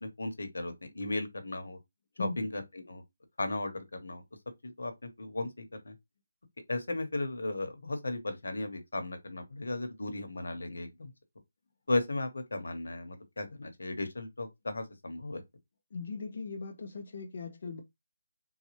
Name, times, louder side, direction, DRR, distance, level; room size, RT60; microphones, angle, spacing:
voice 1, 0.0-1.8 2.2-3.0 3.4-4.2 4.6-5.9 6.7-11.1 11.9-15.4, left 2 dB, 65° left, 1.0 m, -35 dB
voice 2, 15.9-17.8, left 4 dB, 30° left, 0.4 m, -39 dB
3.9 x 2.2 x 3.1 m
hypercardioid pair, 180°, 0 cm